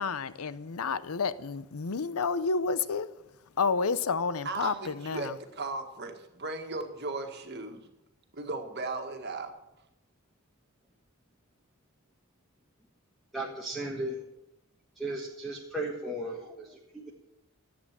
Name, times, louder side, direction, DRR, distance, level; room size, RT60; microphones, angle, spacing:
voice 1, 0.0-3.1 3.6-5.4, left 4 dB, 80° left, 0.7 m, -30 dB
voice 2, 4.4-7.9 8.3-9.5, right 3 dB, 50° right, 1.7 m, -36 dB
voice 3, 13.3-14.2 15.0-17.1, right 1 dB, ahead, 1.4 m, -36 dB
14.5 x 8.7 x 7.4 m
head